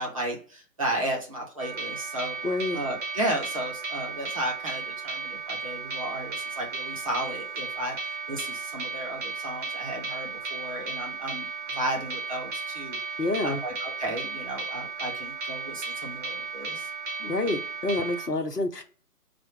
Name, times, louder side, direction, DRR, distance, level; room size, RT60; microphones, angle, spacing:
voice 1, 0.0-2.4 2.7-13.0 13.4-16.9, right 1 dB, 20° right, -1 dB, 0.8 m, -34 dB
sound 1, 1.6-18.3, right 4 dB, 50° right, 0.7 m, -35 dB
voice 2, 2.4-2.8 13.2-13.6 17.2-18.8, left 2 dB, 90° left, 6 dB, 1.0 m, -28 dB
4.5 x 2.4 x 4.6 m, 0.39 s
figure-of-eight pair, 140°, 46 cm